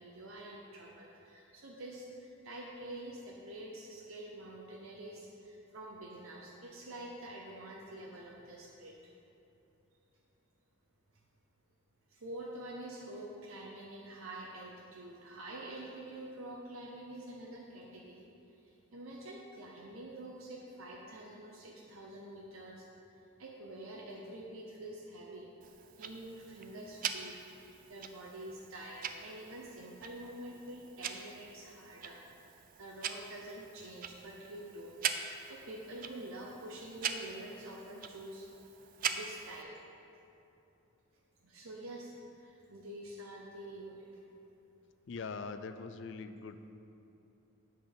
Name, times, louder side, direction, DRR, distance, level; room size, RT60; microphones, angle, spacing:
voice 1, 0.0-8.9 12.1-18.3 18.6-22.9 23.1-25.5 26.0-32.2 32.8-35.0 35.2-38.5 39.1-39.7 41.4-44.2, right 1 dB, 70° right, -2 dB, 0.8 m, -47 dB
Tick-tock, 25.6-39.6, right 7 dB, 40° right, 0.3 m, -43 dB
voice 2, 45.1-46.7, left 4 dB, 55° left, 9 dB, 0.4 m, -42 dB
7.8 x 5.2 x 6.0 m, 2.8 s
head